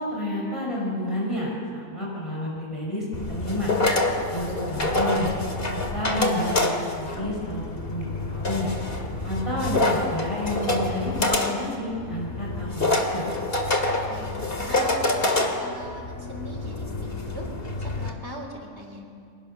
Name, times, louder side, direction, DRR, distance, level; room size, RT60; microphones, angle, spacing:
voice 1, 0.0-3.8 4.3-5.3 5.7-8.7 9.2-13.3, left 1 dB, 25° left, -4 dB, 5.7 m, -30 dB
sound 1, 3.1-18.1, left 2 dB, 45° left, 2.5 m, -27 dB
voice 2, 14.1-17.4 17.8-19.0, equal, 55° right, 1 dB, 4.3 m, -39 dB
29.5 x 23.0 x 6.7 m, 2.4 s
omnidirectional pair, 1.4 m